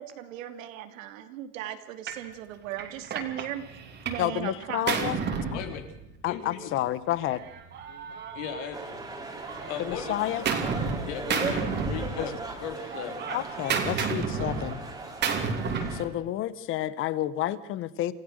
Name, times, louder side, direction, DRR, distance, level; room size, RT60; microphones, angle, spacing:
voice 1, 0.0-5.0, right 12 dB, 85° right, 8 dB, 2.8 m, -38 dB
Gunshot gunfire, 2.1-2.3 2.8-4.3 4.6-6.3 7.2-9.1 9.4-11.0 11.3-12.5 12.8-16.0, right 5 dB, 25° right, 3.0 m, -31 dB
voice 2, 4.2-5.2 5.5-5.6 6.2-7.4 9.8-10.5 12.2-12.3 13.3-14.8 15.9-18.1, left 13 dB, 30° left, 18 dB, 1.0 m, -30 dB
voice 3, 5.5-5.9 6.2-6.7 8.3-9.0 9.6-10.2 11.0-12.3 12.6-13.2, left 8 dB, 65° left, 6 dB, 2.9 m, -37 dB
sound 1, 8.7-16.1, right 3 dB, 10° right, 3.0 m, -38 dB
27.5 x 16.0 x 6.5 m, 0.83 s
supercardioid pair, 155°, 38 cm